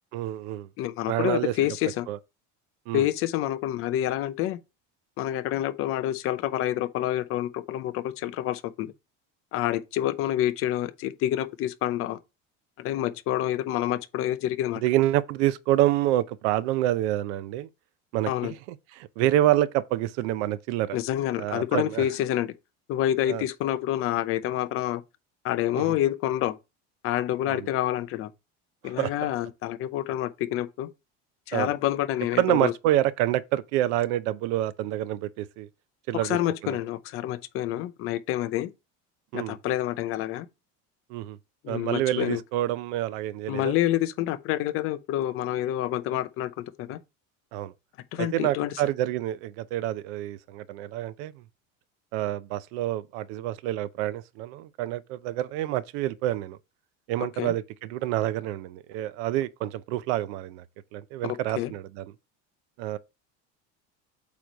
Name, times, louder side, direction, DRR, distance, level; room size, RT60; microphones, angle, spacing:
voice 1, 0.1-0.7 1.1-1.5 2.1-2.2 2.9-3.0 14.8-17.7 18.1-18.5 19.0-21.0 21.4-22.0 23.3-23.4 25.8-26.0 27.5-27.7 29.0-29.1 31.5-31.7 32.4-35.7 36.1-36.4 36.6-36.8 39.3-39.6 41.1-41.4 41.7-43.7 47.5-47.7 48.2-51.3 52.1-56.6 57.1-60.6 60.9-62.0 62.8-63.0, right 14 dB, 85° right, 0.7 m, -27 dB
voice 2, 0.8-2.1 2.9-4.6 5.2-8.9 9.5-12.2 12.8-14.8 18.3-18.5 20.9-22.5 22.9-25.0 25.4-26.6 27.0-28.3 28.8-30.9 31.5-32.7 36.2-38.7 39.3-40.5 41.6-42.4 43.5-47.0 48.1-48.7 57.2-57.5 61.2-61.7, left 13 dB, 40° left, 0.6 m, -28 dB
8.4 x 3.1 x 5.1 m
cardioid pair, 170°, 34 cm